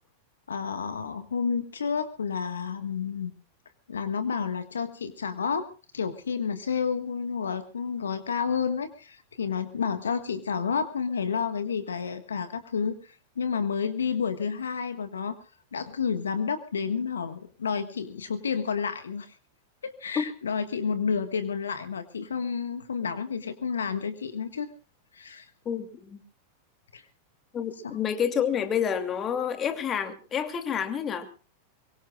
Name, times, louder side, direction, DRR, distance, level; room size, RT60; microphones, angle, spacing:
voice 1, 0.5-3.3 3.9-5.7 5.9-15.3 15.7-19.4 19.8-24.7 25.1-25.5 26.9-27.0 27.8-28.0, left 6 dB, 80° left, 1.5 m, -30 dB
voice 2, 25.6-26.2 27.5-31.3, left 8 dB, 30° left, 2.7 m, -29 dB
23.5 x 23.0 x 2.4 m
figure-of-eight pair, 95°, 0 cm